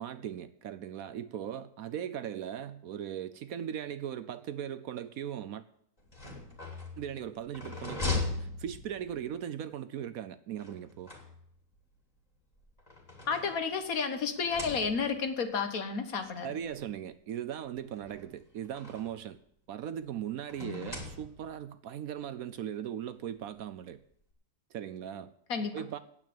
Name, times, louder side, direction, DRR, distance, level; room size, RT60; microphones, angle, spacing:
voice 1, 0.0-5.6 7.0-11.1 16.4-19.4 19.7-24.0 24.7-25.3 25.7-26.0, right 10 dB, 65° right, 1.0 m, -39 dB
sound 1, 6.0-9.3 10.6-11.8 12.6-14.0 14.3-15.3 16.2-16.3 16.6-16.7 17.9-19.3 20.5-21.7, left 3 dB, 25° left, 2.6 m, -39 dB
voice 2, 13.3-16.5 20.6-20.9 25.5-25.7, left 5 dB, 60° left, 1.7 m, -32 dB
9.2 x 8.5 x 8.7 m
omnidirectional pair, 1.7 m